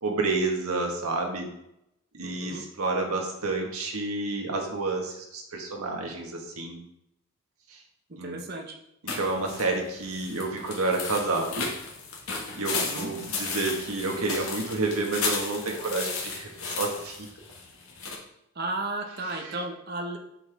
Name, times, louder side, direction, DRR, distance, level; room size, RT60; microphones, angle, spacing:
voice 1, 0.0-1.5 2.1-6.8 7.7-7.8 8.2-8.4 9.0-11.7 12.5-16.5 16.8-17.3 19.3-19.6, right 3 dB, 80° right, 1 dB, 1.5 m, -29 dB
voice 2, 2.2-2.6 8.1-8.8 12.8-13.1 18.5-20.2, right 2 dB, 45° right, 2 dB, 1.1 m, -34 dB
sound 1, 9.1-18.1, left 4 dB, 70° left, 1.7 m, -34 dB
7.7 x 6.6 x 3.5 m, 0.81 s
head